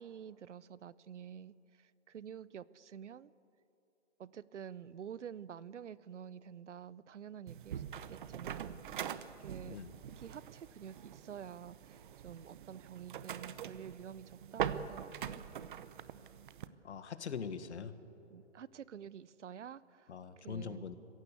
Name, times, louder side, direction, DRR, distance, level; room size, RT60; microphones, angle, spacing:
voice 1, 0.0-3.3 4.2-9.8 10.2-15.4 18.3-20.9, right 8 dB, 80° right, 19 dB, 0.8 m, -49 dB
sound 1, 7.5-16.7, right 9 dB, 45° right, 0.8 m, -43 dB
voice 2, 9.7-10.0 16.8-17.9 20.1-21.0, left 6 dB, 70° left, 11 dB, 1.6 m, -42 dB
24.0 x 15.5 x 8.3 m, 2.8 s
hypercardioid pair, 150°, 35 cm